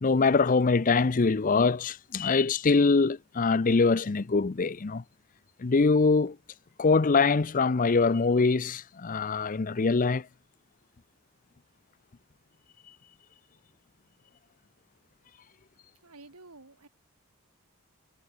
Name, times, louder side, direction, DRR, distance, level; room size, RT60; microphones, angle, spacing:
voice 1, 0.0-5.0 5.6-6.4 6.8-10.3, left 4 dB, 35° left, 0.5 m, -23 dB
voice 2, 16.0-16.9, right 2 dB, 90° right, 3.3 m, -51 dB
head